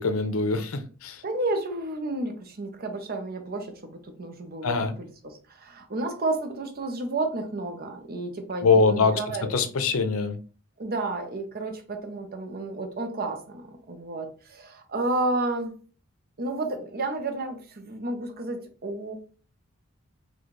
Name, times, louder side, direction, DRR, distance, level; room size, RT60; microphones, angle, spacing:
voice 1, 0.0-1.2 4.6-4.9 8.6-9.1 9.5-10.4, left 4 dB, 75° left, 8 dB, 0.6 m, -23 dB
voice 2, 1.2-9.5 10.8-15.7 16.4-19.1, right 2 dB, 45° right, 6 dB, 0.7 m, -31 dB
4.1 x 2.3 x 3.1 m, 0.39 s
head